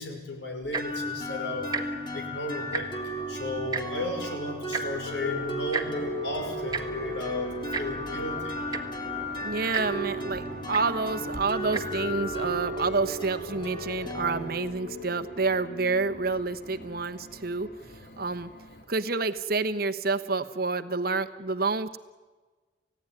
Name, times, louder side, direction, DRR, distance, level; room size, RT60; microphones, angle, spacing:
voice 1, 0.0-1.7 2.1-8.6 17.8-18.1, left 1 dB, 65° left, 4 dB, 5.5 m, -35 dB
Tick-tock, 0.6-1.0 1.6-1.8 2.1-2.3 2.6-3.1 3.7-3.8 4.7-4.8 5.7-5.9 6.7-6.8 7.7-7.8 8.4-8.5 8.7-9.0 9.7-9.8 10.7-10.8 11.6-11.8 12.5-12.6, right 4 dB, 20° right, 1.6 m, -31 dB
sound 1, 0.8-16.4, equal, 25° left, 3.3 m, -35 dB
sound 2, 5.8-18.8, left 1 dB, 50° left, 2.9 m, -47 dB
voice 2, 9.4-17.7 18.2-18.5 18.9-22.0, right 3 dB, 55° right, 9 dB, 1.1 m, -28 dB
29.5 x 16.5 x 9.7 m, 1.3 s
head